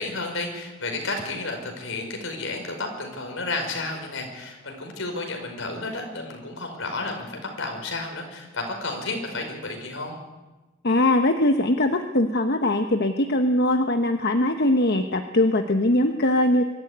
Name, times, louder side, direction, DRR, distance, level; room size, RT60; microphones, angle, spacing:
voice 1, 0.0-10.2, left 2 dB, 75° left, 3 dB, 5.3 m, -32 dB
voice 2, 10.8-16.6, left 1 dB, 55° left, 6 dB, 1.1 m, -21 dB
23.5 x 13.5 x 9.6 m, 1.2 s
head